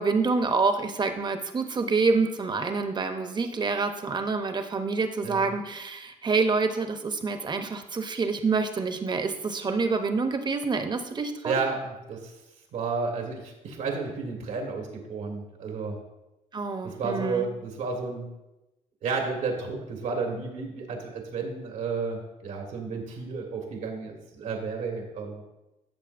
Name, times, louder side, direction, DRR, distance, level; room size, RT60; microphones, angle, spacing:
voice 1, 0.0-11.6 16.5-17.5, right 4 dB, 35° right, 7 dB, 0.8 m, -27 dB
voice 2, 11.4-12.3 12.7-16.0 16.8-18.3 19.0-25.4, right 4 dB, 85° right, 1 dB, 1.6 m, -32 dB
13.5 x 6.2 x 2.6 m, 0.95 s
cardioid pair, 100°, 13 cm